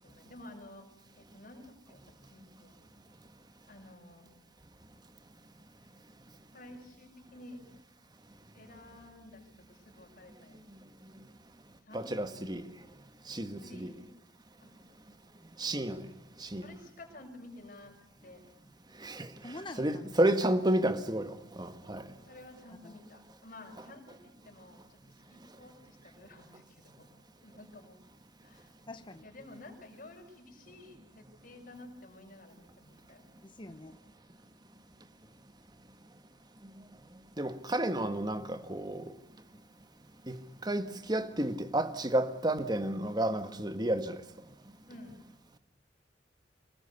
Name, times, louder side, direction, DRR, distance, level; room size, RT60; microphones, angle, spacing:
voice 1, 0.0-0.9 1.1-3.0 3.7-4.3 6.5-7.6 8.5-10.8 11.8-12.1 13.6-14.0 14.6-15.3 16.5-17.9 18.2-18.5 19.8-19.9 22.2-27.0 27.4-28.0 28.4-28.7 29.2-33.3 44.9-45.3, left 2 dB, 50° left, 6.7 m, -52 dB
voice 2, 11.9-12.6 13.3-13.9 15.6-16.1 16.4-16.7 19.0-22.1 37.4-39.1 40.3-44.2, right 1 dB, 25° right, 1.7 m, -31 dB
voice 3, 19.4-20.2 22.8-23.0 28.9-29.2 33.4-34.0, left 2 dB, 30° left, 1.0 m, -45 dB
25.0 x 20.0 x 8.3 m
head